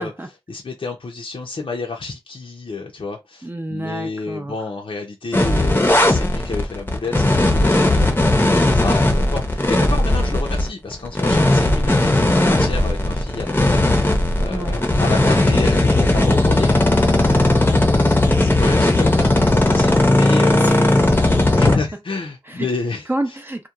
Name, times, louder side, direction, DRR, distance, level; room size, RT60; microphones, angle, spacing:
voice 1, 0.5-12.1 12.4-20.8 21.5-23.1, left 3 dB, 65° left, 0.5 m, -29 dB
voice 2, 3.4-4.5 14.5-14.8 17.8-18.0 20.6-21.2 22.5-22.7 23.1-23.7, right 1 dB, 20° right, 0.5 m, -29 dB
sound 1, 5.3-21.8, left 1 dB, 20° left, 0.6 m, -17 dB
2.9 x 2.2 x 2.3 m
wide cardioid pair, 65°, 10 cm